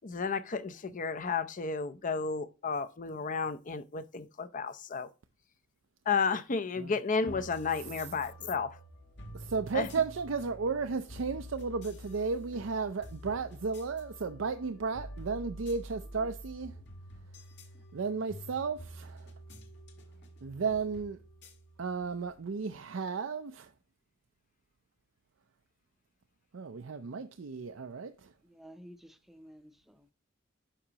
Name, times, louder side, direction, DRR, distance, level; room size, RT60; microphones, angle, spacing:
voice 1, 0.0-5.1 6.1-8.8 9.7-9.9, left 5 dB, 40° left, 0.6 m, -32 dB
sound 1, 7.3-22.5, equal, 60° left, 1.7 m, -48 dB
voice 2, 9.3-16.7 17.9-19.3 20.4-21.2 21.8-23.7 26.5-28.3, right 5 dB, 90° right, 0.5 m, -34 dB
voice 3, 28.4-30.1, equal, ahead, 0.6 m, -53 dB
9.9 x 6.0 x 2.9 m
head